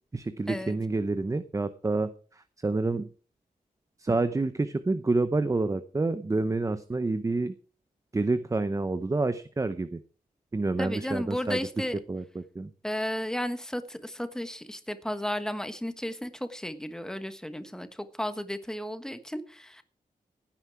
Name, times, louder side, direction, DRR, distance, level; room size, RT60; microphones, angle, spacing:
voice 1, 0.1-3.1 4.0-7.5 8.1-10.0 10.5-12.7, right 3 dB, 20° right, 11 dB, 0.7 m, -28 dB
voice 2, 10.8-11.9 12.8-19.8, equal, 5° left, 10 dB, 1.3 m, -34 dB
16.0 x 9.7 x 4.8 m, 0.39 s
wide cardioid pair, 165°, 16 cm